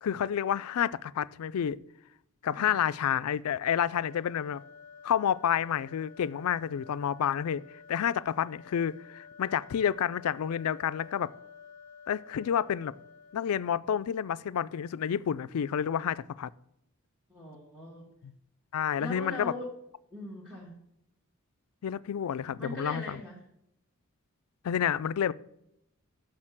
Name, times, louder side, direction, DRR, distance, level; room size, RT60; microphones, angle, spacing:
voice 1, 0.0-1.8 2.4-4.6 5.0-7.6 7.9-11.3 12.1-12.9 13.3-16.5 18.2-18.3 18.7-19.5 21.8-23.2 24.6-25.3, left 8 dB, 80° left, 0.4 m, -29 dB
sound 1, 3.9-13.8, left 6 dB, 35° left, 0.9 m, -52 dB
voice 2, 17.3-18.1 19.0-19.7 20.1-20.8 22.3-23.4, left 1 dB, 5° right, 1.5 m, -41 dB
6.5 x 6.0 x 7.2 m
head